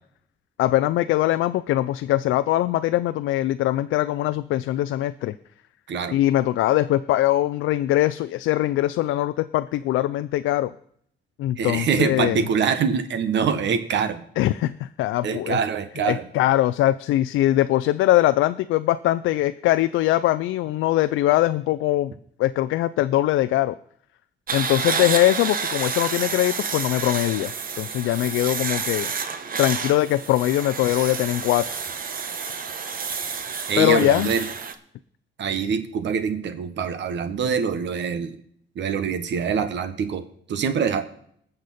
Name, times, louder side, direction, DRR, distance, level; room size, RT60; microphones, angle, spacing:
voice 1, 0.6-5.3 6.1-10.7 11.4-12.5 14.4-15.6 16.1-22.1 22.4-23.8 24.5-29.1 29.6-31.8 33.8-34.3, left 14 dB, 85° left, 11 dB, 0.4 m, -22 dB
voice 2, 11.6-14.2 15.2-16.3 33.7-34.5 35.4-38.4 38.7-41.1, right 6 dB, 65° right, 11 dB, 1.3 m, -24 dB
sound 1, 24.5-34.7, right 5 dB, 45° right, 1.1 m, -29 dB
20.0 x 6.6 x 4.2 m, 0.66 s
cardioid pair, 90°, 20 cm